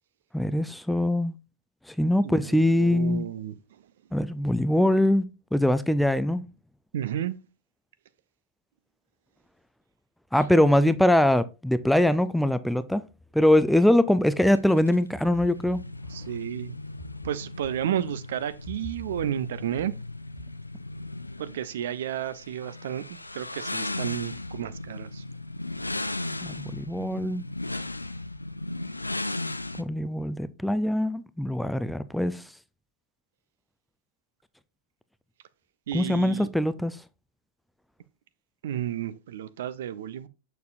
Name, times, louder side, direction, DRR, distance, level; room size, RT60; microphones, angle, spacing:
voice 1, 0.3-1.3 1.9-3.3 4.1-6.4 10.3-13.0 13.3-15.8 26.4-27.4 29.8-32.4 35.9-37.0, left 1 dB, ahead, 0.4 m, -23 dB
voice 2, 2.2-3.6 6.9-7.4 10.6-10.9 16.1-16.7 17.2-19.9 21.4-25.2 35.9-36.5 38.6-40.3, right 10 dB, 60° right, 0.5 m, -32 dB
sound 1, 14.5-29.8, left 2 dB, 85° left, 0.4 m, -36 dB
6.7 x 6.6 x 2.5 m
figure-of-eight pair, 90°, 0 cm